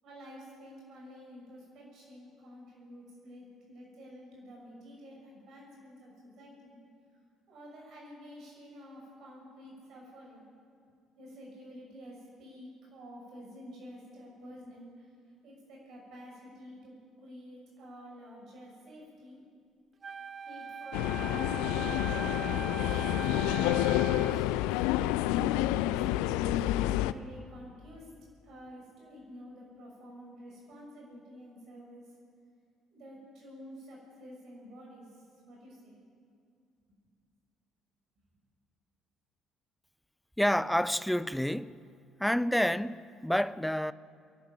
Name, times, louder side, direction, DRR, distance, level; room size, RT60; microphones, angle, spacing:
voice 1, 0.0-6.8 7.1-7.2 7.5-10.5 11.2-15.1 15.4-19.4 20.4-24.8 25.6-28.1 28.4-32.2 32.9-36.0, equal, 55° right, 6.4 m, -50 dB
Wind instrument woodwind instrument, 20.0-24.5, right 6 dB, 35° right, 0.6 m, -40 dB
sound 1, 20.9-27.1, left 14 dB, 65° left, 0.5 m, -28 dB
voice 2, 40.4-41.9 42.2-43.9, equal, 5° left, 0.6 m, -29 dB
27.5 x 12.0 x 8.8 m
figure-of-eight pair, 50°, 0 cm